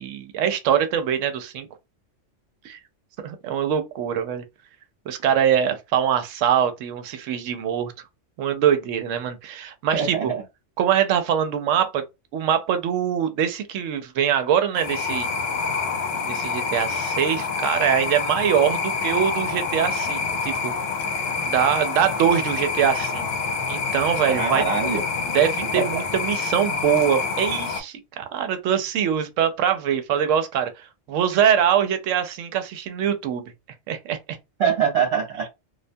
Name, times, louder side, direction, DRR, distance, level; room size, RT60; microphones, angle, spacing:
voice 1, 0.0-1.7 2.6-2.8 3.2-4.4 5.1-7.9 8.4-10.3 10.8-12.0 12.3-15.3 16.2-20.7 21.4-23.3 23.7-24.7 25.3-33.5 33.9-34.4, right 9 dB, 85° right, 0.9 m, -23 dB
voice 2, 9.9-10.4 24.3-25.0 25.8-25.9 34.6-35.5, right 6 dB, 60° right, 1.0 m, -23 dB
sound 1, 14.8-27.8, left 4 dB, 60° left, 0.8 m, -27 dB
2.4 x 2.2 x 2.5 m
omnidirectional pair, 1.3 m